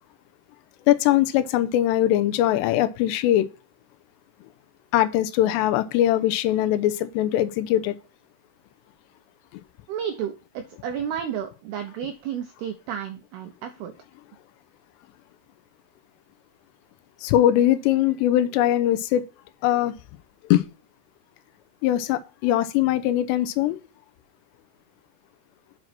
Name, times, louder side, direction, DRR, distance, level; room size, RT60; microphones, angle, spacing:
voice 1, 0.9-3.5 4.9-8.0 9.5-9.6 17.2-19.2 19.6-19.9 20.5-20.6 21.8-23.8, left 13 dB, 80° left, 2.6 m, -21 dB
voice 2, 9.9-13.9, right 9 dB, 85° right, 2.2 m, -32 dB
7.5 x 5.1 x 5.9 m
omnidirectional pair, 5.6 m